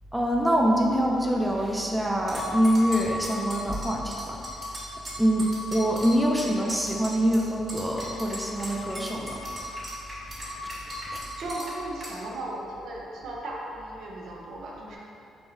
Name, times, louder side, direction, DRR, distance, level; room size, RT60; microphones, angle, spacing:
voice 1, 0.1-4.4 5.2-9.4 10.6-10.7 11.1-11.2, equal, 5° right, -1 dB, 0.4 m, -25 dB
sound 1, 2.3-7.4 7.7-11.7 12.0-12.1, left 1 dB, 30° right, 1.4 m, -36 dB
voice 2, 6.3-6.8 11.4-15.0, right 1 dB, 75° right, -3 dB, 0.6 m, -37 dB
4.5 x 2.8 x 2.7 m, 2.6 s
cardioid pair, 90°, 0 cm